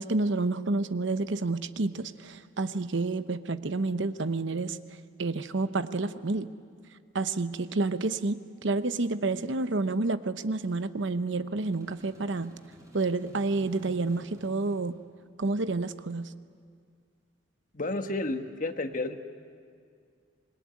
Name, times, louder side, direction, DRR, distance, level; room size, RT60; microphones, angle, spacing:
voice 1, 0.0-4.8 5.2-6.5 7.1-12.5 12.9-15.0 15.4-16.3, right 3 dB, 65° right, 12 dB, 0.8 m, -29 dB
sound 1, 11.6-14.9, equal, 15° right, 3.6 m, -56 dB
voice 2, 17.7-19.2, left 2 dB, 40° left, 7 dB, 1.3 m, -31 dB
26.0 x 21.5 x 9.6 m, 2.2 s
head